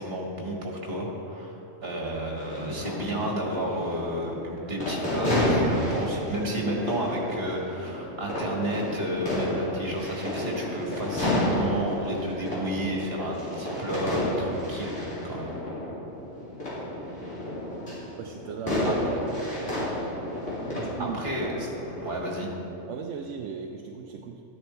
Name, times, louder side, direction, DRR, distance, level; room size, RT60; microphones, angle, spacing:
voice 1, 0.0-15.5 18.8-18.9 21.0-21.7 22.0-22.5, right 1 dB, 55° right, -1 dB, 2.2 m, -31 dB
sound 1, 2.4-22.1, left 1 dB, 75° left, 3.6 m, -31 dB
voice 2, 18.2-19.6 20.7-21.2 22.9-24.4, right 6 dB, 80° right, 3 dB, 1.0 m, -36 dB
13.0 x 10.0 x 4.4 m, 3.0 s
omnidirectional pair, 1.3 m